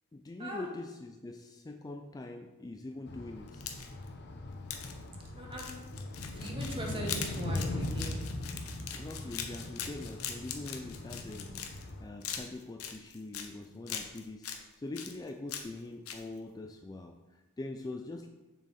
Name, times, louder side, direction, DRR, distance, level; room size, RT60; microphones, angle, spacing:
voice 1, 0.1-3.7 8.9-18.3, left 2 dB, 15° left, 4 dB, 0.3 m, -43 dB
sound 1, 3.1-12.0, left 1 dB, 50° left, 0.8 m, -40 dB
sound 2, 3.5-4.1 4.7-4.9 5.5-11.9 12.2-13.5 13.9-14.6 15.0-15.8 16.1-16.2, left 8 dB, 80° left, 0.9 m, -41 dB
voice 2, 5.4-5.8 6.3-8.2, right 1 dB, 25° right, 0 dB, 1.5 m, -40 dB
7.0 x 6.3 x 4.2 m, 1.2 s
head